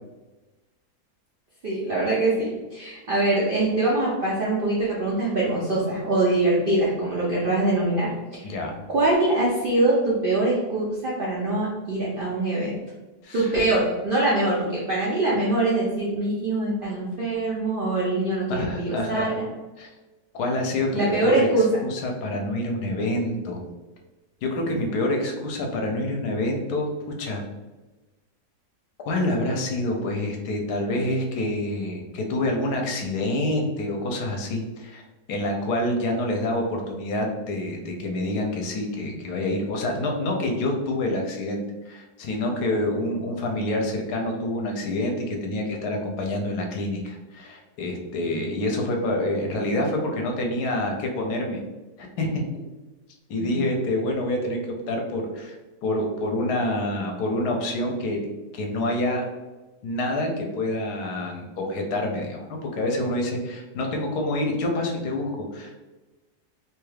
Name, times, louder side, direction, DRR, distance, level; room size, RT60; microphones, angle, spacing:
voice 1, 1.6-8.5 8.9-12.8 13.3-19.5 20.9-21.7 53.4-53.5, right 2 dB, 70° right, -6 dB, 0.5 m, -23 dB
voice 2, 8.4-8.7 13.2-13.5 18.5-19.4 19.8-19.9 20.3-23.6 24.4-27.4 29.0-35.0 35.3-51.6 52.0-52.6 53.3-54.6 54.9-55.5 55.8-58.3 58.5-59.3 59.8-65.8, left 1 dB, 80° left, 1 dB, 1.1 m, -27 dB
3.1 x 2.3 x 3.2 m, 1.2 s
omnidirectional pair, 1.7 m